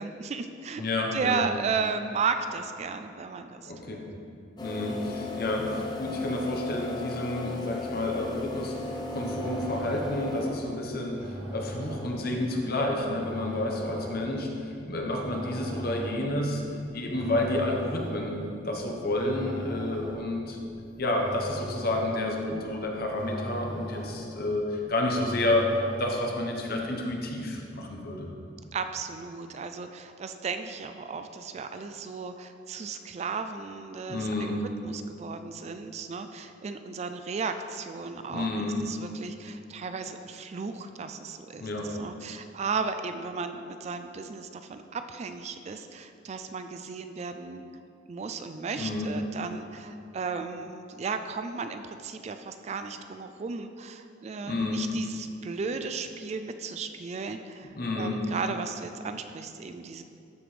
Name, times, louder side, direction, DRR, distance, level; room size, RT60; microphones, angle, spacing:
voice 1, 0.0-0.8 1.1-4.0 28.7-41.6 41.9-47.7 48.1-60.0, right 5 dB, 35° right, 8 dB, 0.3 m, -35 dB
voice 2, 0.8-1.4 3.7-4.0 4.6-16.6 16.9-18.4 18.6-20.6 21.0-25.7 26.0-28.5 34.1-34.6 38.3-38.8 41.6-41.9 48.8-49.1 54.5-54.8 57.8-58.2, left 1 dB, 55° left, 1 dB, 1.0 m, -30 dB
sound 1, 4.6-10.9, left 3 dB, 20° left, 0.8 m, -36 dB
sound 2, 9.1-26.5, right 1 dB, 75° right, 1.7 m, -41 dB
13.0 x 5.0 x 3.3 m, 2.6 s
head